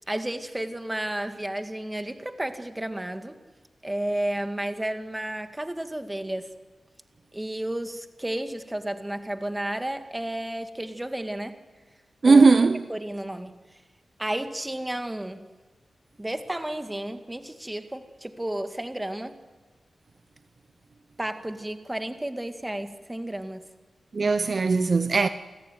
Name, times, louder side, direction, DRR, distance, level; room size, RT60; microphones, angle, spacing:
voice 1, 0.0-3.4 3.8-6.5 7.3-11.6 12.2-12.5 12.9-13.5 14.2-15.5 16.2-19.4 21.2-23.6, right 1 dB, 15° right, 2.1 m, -32 dB
voice 2, 12.2-12.8 24.1-25.3, right 4 dB, 55° right, 0.8 m, -18 dB
29.0 x 14.0 x 9.4 m
cardioid pair, 55°, 0 cm